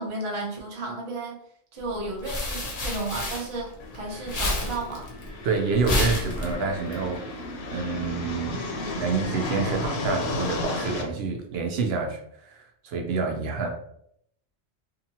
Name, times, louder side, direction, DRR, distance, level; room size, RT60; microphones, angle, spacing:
voice 1, 0.0-1.4 1.7-5.1, right 2 dB, 35° right, -1 dB, 0.6 m, -33 dB
sound 1, 1.9-3.9 4.2-6.9, left 1 dB, 45° left, 0.7 m, -29 dB
sound 2, 3.8-11.0, left 2 dB, 80° left, 0.8 m, -33 dB
voice 2, 5.4-7.3 7.7-8.6 9.0-13.7, right 4 dB, 75° right, 3 dB, 0.8 m, -28 dB
2.7 x 2.5 x 2.7 m, 0.70 s
omnidirectional pair, 1.1 m